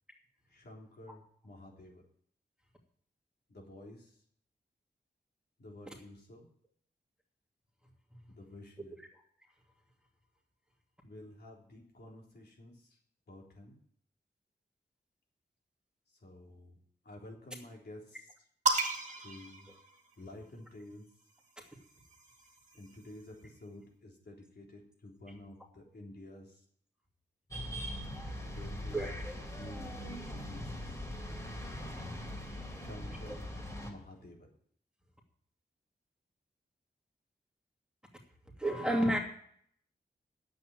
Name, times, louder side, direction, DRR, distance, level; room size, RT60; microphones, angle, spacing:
voice 1, 0.5-2.0 3.5-4.2 5.6-6.5 8.3-9.0 11.0-13.0 13.3-13.8 16.1-16.8 17.0-18.3 19.2-19.7 20.2-21.0 22.8-26.6 28.5-29.0 29.6-31.0 32.7-33.5 33.9-34.5, left 1 dB, 70° left, -1 dB, 3.8 m, -51 dB
sound 1, 18.7-20.5 21.6-23.2, right 3 dB, 45° right, 2.1 m, -35 dB
sound 2, 27.5-33.9, equal, 20° left, 3.1 m, -41 dB
voice 2, 28.9-29.3 33.3-33.4 38.6-39.2, right 1 dB, 5° right, 0 dB, 2.6 m, -30 dB
9.4 x 7.9 x 9.1 m, 0.62 s
wide cardioid pair, 95°, 18 cm